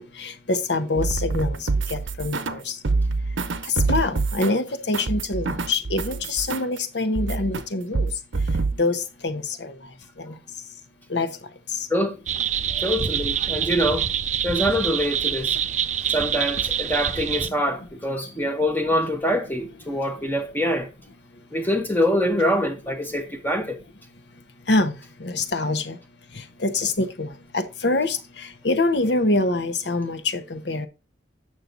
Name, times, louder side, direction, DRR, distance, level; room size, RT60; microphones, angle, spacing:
voice 1, 0.0-2.8 3.6-8.1 8.8-9.7 10.2-10.3 11.1-11.3 24.7-26.0 26.3-30.9, left 2 dB, 65° left, 1.2 m, -25 dB
sound 1, 1.0-2.6 2.8-6.8 7.2-7.6 7.9-8.8, right 3 dB, 85° right, 0.8 m, -26 dB
sound 2, 12.3-17.5, right 8 dB, 40° right, 0.4 m, -25 dB
voice 2, 12.7-14.1 14.4-15.6 16.1-20.9 21.5-23.8, equal, 10° left, 0.9 m, -24 dB
8.7 x 6.6 x 3.9 m
head